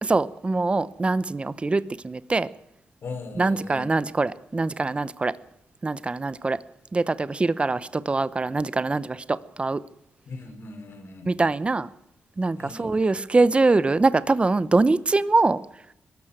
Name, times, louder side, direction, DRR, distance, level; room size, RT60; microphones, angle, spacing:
voice 1, 0.0-2.5 3.4-5.3 5.8-6.6 6.9-9.8 11.2-11.9 12.4-15.6, right 3 dB, 25° right, 16 dB, 0.8 m, -23 dB
voice 2, 3.0-3.9 10.3-11.3 12.6-12.9, left 3 dB, 65° left, 5 dB, 5.7 m, -38 dB
22.0 x 13.0 x 9.0 m, 0.80 s
cardioid pair, 95°, 4 cm